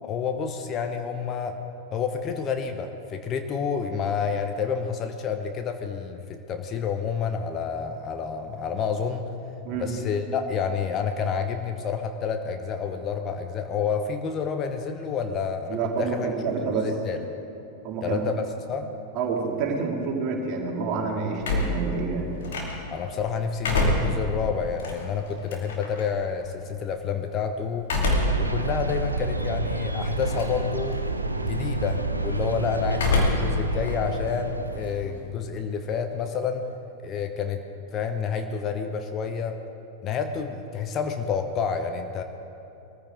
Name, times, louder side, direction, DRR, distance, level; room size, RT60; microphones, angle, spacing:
voice 1, 0.0-1.6 1.9-9.3 9.8-16.3 16.8-17.2 18.0-18.9 22.9-27.9 28.4-31.0 31.4-36.6 37.0-37.6 37.9-39.6 40.0-42.2, left 6 dB, 30° left, 6 dB, 1.0 m, -29 dB
voice 2, 15.7-16.9 17.8-18.2 19.1-22.3, right 5 dB, 40° right, 0 dB, 2.5 m, -28 dB
sound 1, 21.4-23.0 23.4-26.0 27.8-28.5 29.0-29.1 30.1-30.6 30.9-31.4 32.9-33.6 33.9-35.3, left 2 dB, 60° left, 2.7 m, -26 dB
sound 2, 28.1-35.0, right 2 dB, 85° right, 0.8 m, -29 dB
22.0 x 14.5 x 3.8 m, 2.8 s
figure-of-eight pair, 90°, 0 cm